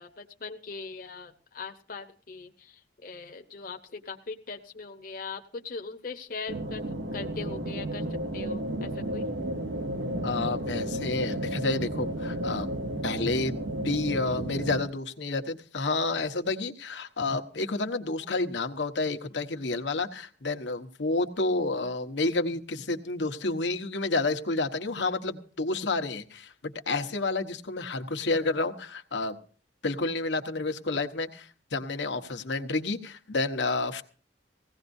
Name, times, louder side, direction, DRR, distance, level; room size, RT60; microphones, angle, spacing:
voice 1, 0.0-6.8 7.1-8.0 8.3-9.3, left 4 dB, 55° left, 5 dB, 0.9 m, -40 dB
sound 1, 6.5-14.8, right 1 dB, 90° right, 1.2 m, -32 dB
voice 2, 10.2-12.7 13.0-13.6 13.8-29.4 29.8-34.0, left 3 dB, 90° left, 7 dB, 1.2 m, -30 dB
20.0 x 16.5 x 2.7 m, 0.41 s
head